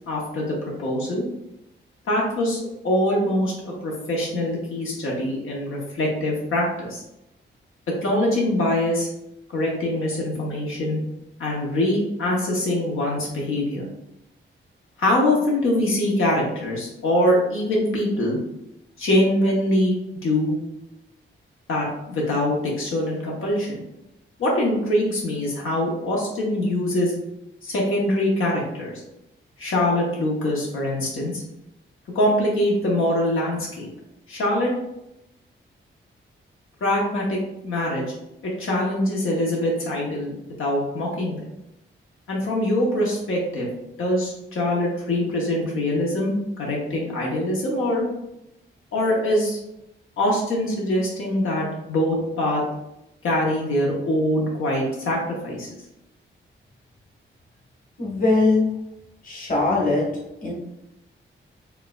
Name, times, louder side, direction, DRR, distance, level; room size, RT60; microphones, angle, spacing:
voice 1, 0.1-1.2 2.1-7.0 8.0-9.1 9.5-11.0 11.4-13.9 15.0-18.4 19.0-20.6 21.7-23.8 24.4-27.1 27.6-29.0 29.6-31.4 32.1-33.9 34.3-34.7 36.8-37.4 37.6-38.1 38.4-41.4 42.3-43.7 44.0-48.0 48.9-49.6 50.2-52.6 53.2-55.7, left 1 dB, 90° left, -3 dB, 1.0 m, -23 dB
voice 2, 58.0-58.7 59.2-60.1 60.4-60.5, left 3 dB, 40° left, -3 dB, 1.4 m, -20 dB
4.6 x 3.3 x 2.4 m, 0.87 s
wide cardioid pair, 115°, 21 cm